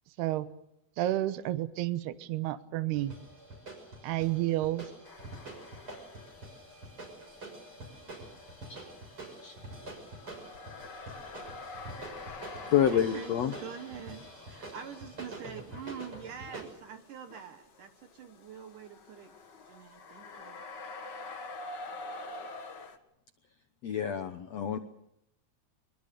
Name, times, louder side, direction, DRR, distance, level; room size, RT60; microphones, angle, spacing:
voice 1, 0.2-0.5 1.0-3.1 4.0-4.9, right 15 dB, 80° right, 14 dB, 3.0 m, -30 dB
sound 1, 2.9-16.7, right 2 dB, 30° right, 7.1 m, -46 dB
sound 2, 5.0-6.6 6.9-23.0, left 3 dB, 50° left, 1.3 m, -47 dB
voice 2, 7.7-8.4 12.9-19.3 19.7-20.6, right 7 dB, 65° right, 7 dB, 2.4 m, -46 dB
voice 3, 12.7-13.5 23.8-24.8, left 9 dB, 80° left, 8 dB, 1.4 m, -28 dB
24.0 x 22.5 x 6.8 m, 0.81 s
omnidirectional pair, 4.6 m